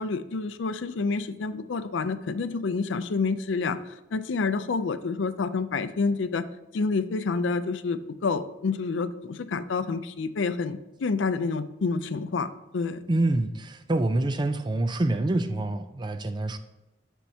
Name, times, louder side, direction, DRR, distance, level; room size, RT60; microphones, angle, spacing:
voice 1, 0.0-6.4 6.7-13.0, left 4 dB, 75° left, 0.5 m, -28 dB
voice 2, 13.1-16.6, right 2 dB, 25° right, 0.4 m, -26 dB
13.0 x 4.5 x 2.8 m
head